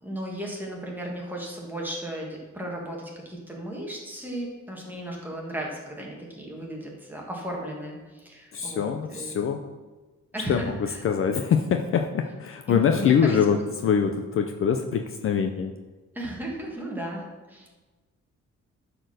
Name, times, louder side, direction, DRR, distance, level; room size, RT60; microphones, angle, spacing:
voice 1, 0.0-9.3 10.3-11.0 12.7-13.6 16.1-17.7, right 1 dB, 5° right, -2 dB, 1.6 m, -35 dB
voice 2, 8.5-9.6 10.5-15.7, left 7 dB, 45° left, 5 dB, 0.6 m, -24 dB
12.0 x 4.4 x 6.5 m, 1.3 s
wide cardioid pair, 170°, 29 cm